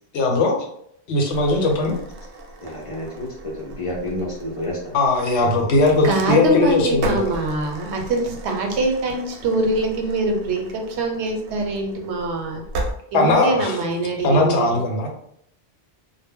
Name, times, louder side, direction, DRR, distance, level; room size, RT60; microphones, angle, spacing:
voice 1, 0.1-0.6 1.1-2.0 4.9-7.3 13.1-13.8 14.2-15.1, left 2 dB, 85° left, 1 dB, 0.9 m, -19 dB
sound 1, 1.3-12.9, right 1 dB, 65° right, 0.7 m, -36 dB
voice 2, 2.6-5.0 5.4-5.5, left 1 dB, 45° left, -2 dB, 0.4 m, -30 dB
voice 3, 6.0-12.6 13.1-14.8, right 2 dB, 90° right, 3 dB, 0.9 m, -23 dB
2.1 x 2.0 x 3.4 m, 0.69 s
omnidirectional pair, 1.1 m